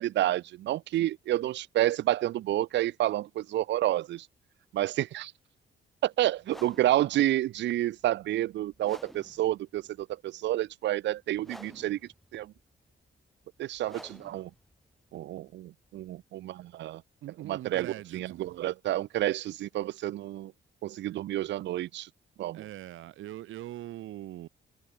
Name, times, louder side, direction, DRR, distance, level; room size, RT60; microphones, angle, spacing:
voice 1, 0.0-4.3 4.7-5.3 6.0-12.0 12.3-12.5 13.6-14.5 15.1-17.0 17.5-20.5 20.8-22.1 22.4-22.6, right 14 dB, 65° right, 0.5 m, -29 dB
sound 1, 6.4-16.3, equal, ahead, 2.4 m, -53 dB
voice 2, 17.2-18.6 22.5-24.5, right 14 dB, 85° right, 3.0 m, -42 dB
cardioid pair, 90°, 20 cm